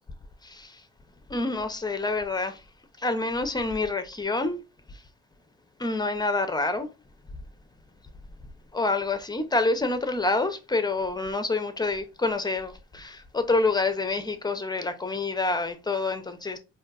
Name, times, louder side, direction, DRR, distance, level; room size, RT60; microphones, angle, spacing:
voice 1, 1.3-2.6 3.0-4.6 5.8-6.9 8.7-16.6, left 3 dB, 15° left, 0.5 m, -27 dB
3.7 x 2.6 x 2.3 m
cardioid pair, 90°, 30 cm